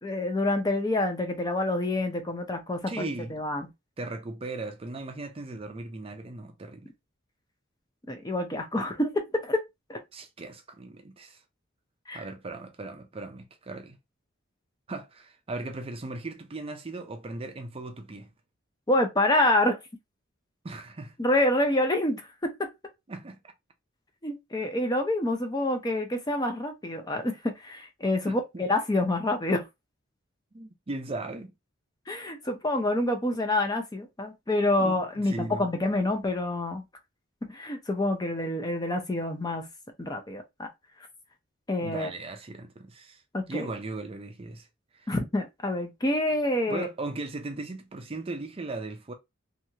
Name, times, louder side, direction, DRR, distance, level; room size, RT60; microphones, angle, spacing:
voice 1, 0.0-3.7 8.1-9.6 9.9-10.0 12.1-12.2 18.9-19.8 21.2-22.7 24.2-27.4 27.6-29.7 32.1-36.8 37.5-39.7 40.0-40.7 41.7-42.1 43.3-43.7 45.1-46.9, left 1 dB, 20° left, 0.6 m, -27 dB
voice 2, 2.9-3.3 4.0-6.9 10.1-11.4 12.1-14.0 14.9-18.3 20.6-21.1 23.1-23.4 28.2-28.7 30.5-31.5 34.8-35.6 41.8-43.2 43.5-44.7 45.0-45.1 46.7-49.1, right 2 dB, 30° right, 0.5 m, -37 dB
3.1 x 2.4 x 2.8 m
head